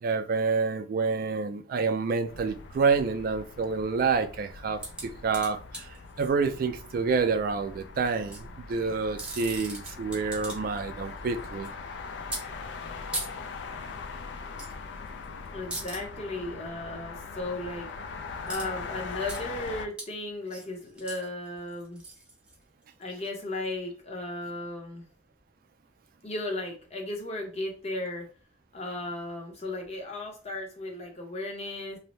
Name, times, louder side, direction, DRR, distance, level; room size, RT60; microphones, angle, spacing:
voice 1, 0.0-5.9 6.2-11.7, right 4 dB, 50° right, 0.3 m, -28 dB
sound 1, 2.3-19.9, left 4 dB, 70° left, 0.4 m, -41 dB
sound 2, 4.8-6.3 8.1-8.4 9.0-10.8 11.1-11.7 12.3-12.4 13.1-13.3 14.6-14.7 15.1-15.3 15.7-16.0 18.5-18.7 19.0-19.4 20.0-20.1 20.5-23.0 23.6-23.7, right 1 dB, 5° right, 0.6 m, -38 dB
voice 2, 15.5-17.9 18.4-22.0 23.0-25.1 26.2-28.3 28.7-32.0, left 2 dB, 35° left, 0.7 m, -35 dB
2.6 x 2.0 x 3.1 m
head